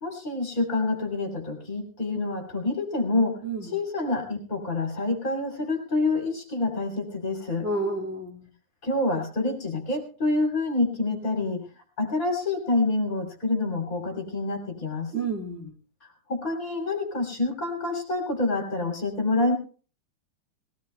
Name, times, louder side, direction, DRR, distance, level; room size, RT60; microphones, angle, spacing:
voice 1, 0.0-7.7 8.8-11.7 12.0-15.1 16.3-19.5, left 2 dB, 30° left, 4 dB, 3.4 m, -27 dB
voice 2, 7.6-8.5 15.1-15.7, right 3 dB, 25° right, 0 dB, 1.8 m, -30 dB
20.5 x 17.5 x 2.3 m, 0.39 s
omnidirectional pair, 3.4 m